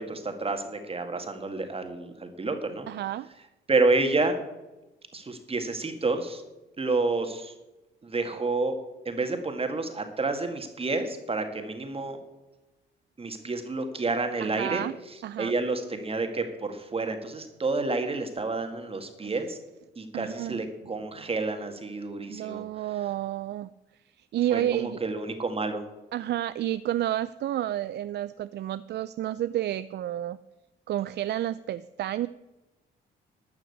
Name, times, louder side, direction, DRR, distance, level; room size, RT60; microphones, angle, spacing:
voice 1, 0.0-2.9 3.7-4.4 5.1-6.4 6.8-7.5 8.0-8.8 9.1-12.2 13.2-14.8 15.4-19.6 20.0-22.6 24.5-25.8, right 3 dB, 30° right, 6 dB, 1.9 m, -29 dB
voice 2, 2.9-3.3 14.4-14.9 15.2-15.5 19.2-19.3 20.1-20.6 22.3-23.7 24.2-25.0 26.1-30.4 30.9-32.3, right 12 dB, 60° right, 15 dB, 0.4 m, -30 dB
12.5 x 5.8 x 8.2 m, 1.0 s
cardioid pair, 90°, 20 cm